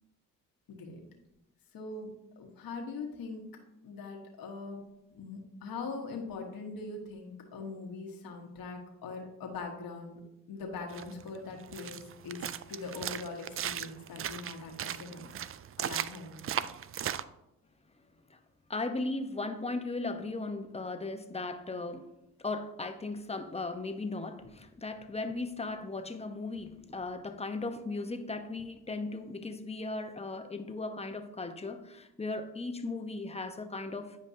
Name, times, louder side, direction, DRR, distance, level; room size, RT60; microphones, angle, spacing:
voice 1, 0.7-1.0 1.7-3.4 3.8-4.8 5.1-10.2 10.5-15.3 15.8-16.5, left 3 dB, 65° left, 1 dB, 1.4 m, -42 dB
sound 1, 10.9-17.2, right 10 dB, 40° right, 0.4 m, -37 dB
voice 2, 18.7-22.1 22.4-34.2, left 3 dB, 15° left, 7 dB, 0.9 m, -37 dB
9.7 x 5.1 x 2.8 m, 0.87 s
supercardioid pair, 55°, 37 cm